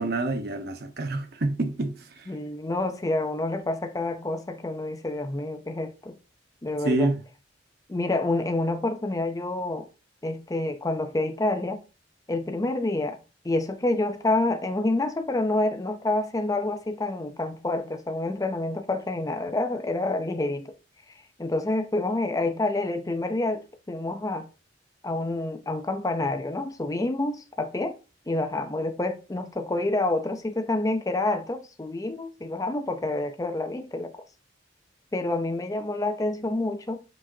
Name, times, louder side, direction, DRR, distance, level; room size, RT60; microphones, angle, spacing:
voice 1, 0.0-2.3 6.8-7.2, right 2 dB, 60° right, 0.9 m, -27 dB
voice 2, 2.3-6.2 6.6-7.1 7.9-9.9 10.2-11.8 12.3-13.2 13.4-20.7 21.4-24.5 25.0-27.9 28.3-34.2 35.1-37.0, left 2 dB, 20° left, 0.5 m, -28 dB
7.2 x 4.9 x 2.7 m
head